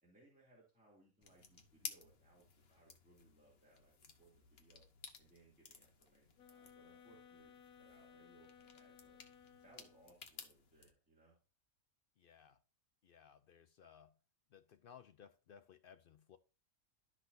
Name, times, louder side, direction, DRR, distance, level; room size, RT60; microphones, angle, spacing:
voice 1, 0.0-3.9 4.2-4.8 5.2-7.5 7.8-9.2 9.6-11.4, right 2 dB, 5° right, 2.5 m, -68 dB
sound 1, 1.2-10.9, left 5 dB, 50° left, 1.2 m, -56 dB
sound 2, 6.4-10.3, left 7 dB, 85° left, 1.2 m, -61 dB
voice 2, 12.2-12.6 13.0-14.1 14.5-16.4, left 8 dB, 70° left, 0.5 m, -61 dB
12.0 x 6.0 x 2.6 m
omnidirectional pair, 1.5 m